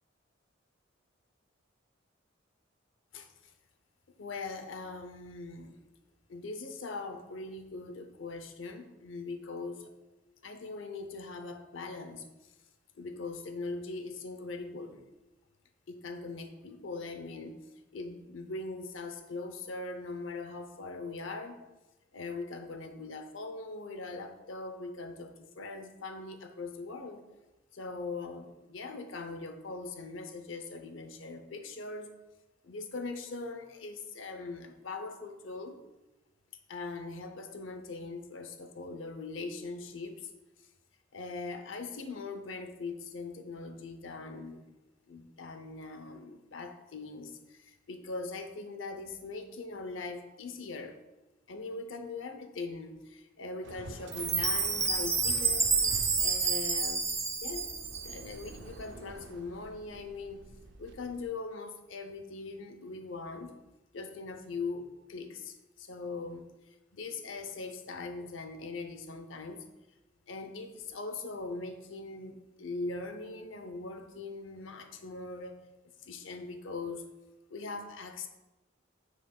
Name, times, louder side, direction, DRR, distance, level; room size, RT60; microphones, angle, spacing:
voice 1, 3.1-3.5 4.2-5.8 6.3-9.9 10.4-12.5 12.9-15.0 15.9-17.6 17.9-21.6 22.1-27.2 27.7-32.1 32.6-35.8 36.7-40.3 41.1-44.7 45.1-51.0 51.5-57.1 57.4-57.7 58.0-60.5 60.8-63.5 63.9-69.7 70.3-75.6 76.0-77.1 77.5-78.3, left 3 dB, 75° left, 7 dB, 0.7 m, -41 dB
Waves surf, 53.6-61.3, right 2 dB, 65° right, 0.5 m, -47 dB
Chime, 54.1-58.3, right 4 dB, 15° right, 0.5 m, -29 dB
7.6 x 6.6 x 2.3 m, 1.1 s
head